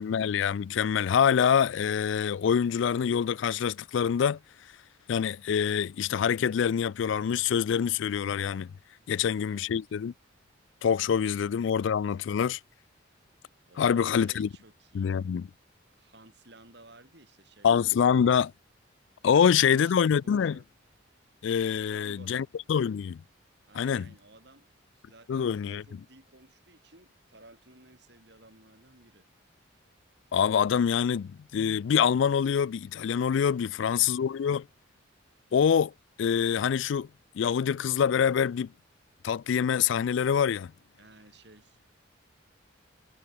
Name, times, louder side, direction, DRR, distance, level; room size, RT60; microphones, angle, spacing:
voice 1, 0.0-4.4 5.1-8.7 9.1-10.1 10.8-12.6 13.8-14.5 14.9-15.5 17.6-18.5 19.2-20.6 21.4-23.2 23.8-24.1 25.3-25.8 30.3-34.7 35.5-35.9 36.2-37.1 37.3-38.7 39.2-40.7, left 7 dB, 65° left, 0.3 m, -25 dB
voice 2, 9.0-9.8 11.2-11.4 13.7-15.2 15.9-17.7 18.1-18.4 19.3-20.7 21.8-22.5 23.7-29.2 33.6-34.1 41.0-41.9, right 2 dB, 55° right, 7.9 m, -56 dB
head